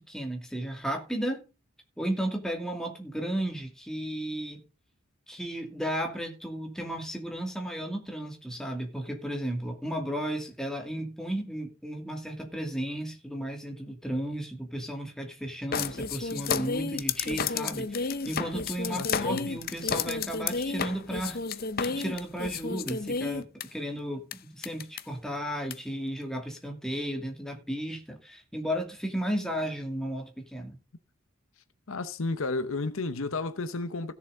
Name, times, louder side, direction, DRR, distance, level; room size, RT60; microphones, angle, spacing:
voice 1, 0.1-1.4 2.0-4.6 5.3-21.4 21.8-23.5 23.7-30.8, equal, 5° left, 2.2 m, -34 dB
sound 1, 15.7-23.6 24.3-24.4 24.6-25.0 25.7-25.8, left 5 dB, 45° left, 0.6 m, -31 dB
voice 2, 18.9-19.6 31.9-34.1, left 3 dB, 70° left, 0.9 m, -32 dB
16.0 x 7.1 x 3.9 m
head